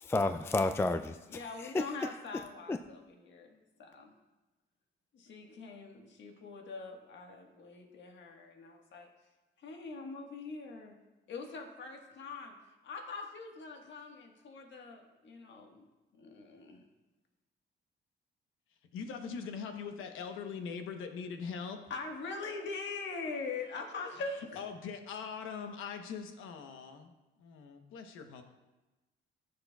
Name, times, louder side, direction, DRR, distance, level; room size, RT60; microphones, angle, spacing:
voice 1, 0.1-2.2 2.7-2.8, left 2 dB, 10° left, 8 dB, 0.3 m, -31 dB
voice 2, 1.3-3.0 3.3-4.1 5.1-9.1 9.6-10.9 11.3-12.5 12.8-15.9 16.1-16.8 21.9-24.6, left 4 dB, 65° left, 3 dB, 1.5 m, -43 dB
voice 3, 18.9-21.8 24.3-27.1 27.4-28.4, left 6 dB, 85° left, 6 dB, 1.0 m, -42 dB
13.5 x 6.9 x 2.3 m, 1.1 s
cardioid pair, 90°, 20 cm